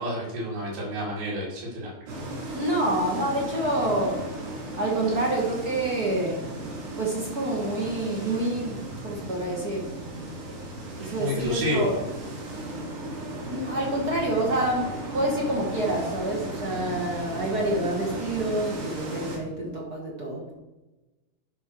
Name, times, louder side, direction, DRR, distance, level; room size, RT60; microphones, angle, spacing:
voice 1, 0.0-1.9 11.2-11.9, equal, 85° right, -9 dB, 4.4 m, -29 dB
sound 1, 2.1-19.4, right 1 dB, 70° right, 3.9 m, -36 dB
voice 2, 2.5-4.3 4.8-6.5 7.0-9.9 10.5-10.6 11.0-12.0 13.4-20.5, right 1 dB, 50° right, -2 dB, 1.1 m, -27 dB
11.5 x 5.6 x 4.5 m, 1.1 s
omnidirectional pair, 4.2 m